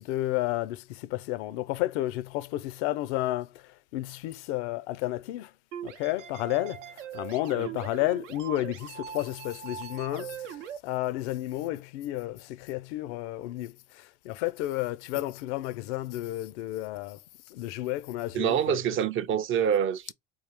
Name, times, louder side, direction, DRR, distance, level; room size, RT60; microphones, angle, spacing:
voice 1, 0.0-3.5 3.9-5.5 5.8-6.8 7.1-10.4 10.8-13.7 14.2-17.2 17.5-18.8, left 16 dB, 70° left, 0.5 m, -31 dB
sound 1, 5.7-10.8, right 9 dB, 85° right, 0.6 m, -41 dB
voice 2, 18.3-20.1, right 8 dB, 35° right, 0.4 m, -26 dB
3.7 x 2.3 x 3.1 m
hypercardioid pair, 75°, 36 cm